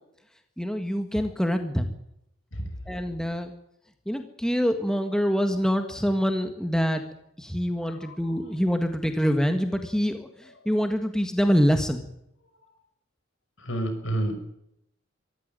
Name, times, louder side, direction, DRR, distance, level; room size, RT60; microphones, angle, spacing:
voice 1, 0.6-1.9 2.9-3.5 4.0-7.0 7.4-12.0, equal, 5° left, 6 dB, 1.7 m, -25 dB
voice 2, 7.8-8.3 13.6-14.4, right 1 dB, 70° left, 7 dB, 6.4 m, -30 dB
25.0 x 14.5 x 9.0 m, 0.79 s
head